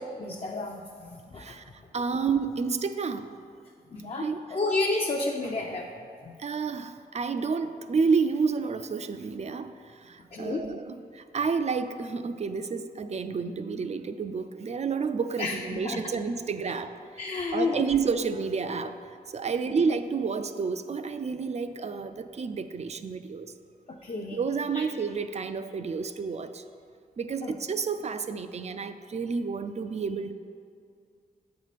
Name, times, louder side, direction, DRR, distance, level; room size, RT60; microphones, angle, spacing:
voice 1, 0.2-1.6 3.9-5.9 6.2-6.3 10.3-10.6 15.4-16.0 17.2-17.8 23.9-24.4 24.7-24.8 27.4-27.5, left 3 dB, 40° left, 0 dB, 0.5 m, -31 dB
voice 2, 1.9-3.3 4.2-4.4 6.4-17.2 17.5-18.9 19.3-23.5 24.4-26.6 27.2-30.3, right 5 dB, 45° right, 10 dB, 0.4 m, -30 dB
7.9 x 4.7 x 4.1 m, 2.3 s
cardioid pair, 80°, 16 cm